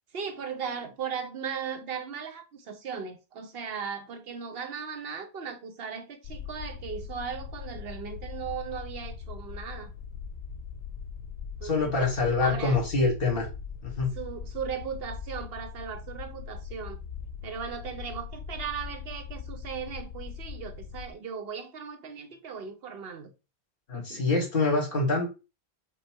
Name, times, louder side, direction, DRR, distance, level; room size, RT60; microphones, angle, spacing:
voice 1, 0.1-9.9 11.6-12.1 12.4-12.8 14.2-17.0 17.4-23.3 23.9-24.3, right 6 dB, 65° right, 0.9 m, -37 dB
sound 1, 6.2-21.1, left 6 dB, 85° left, 0.8 m, -40 dB
voice 2, 11.6-13.5 13.8-14.1 23.9-25.3, left 3 dB, 60° left, 1.7 m, -25 dB
5.3 x 2.2 x 4.5 m
omnidirectional pair, 1.1 m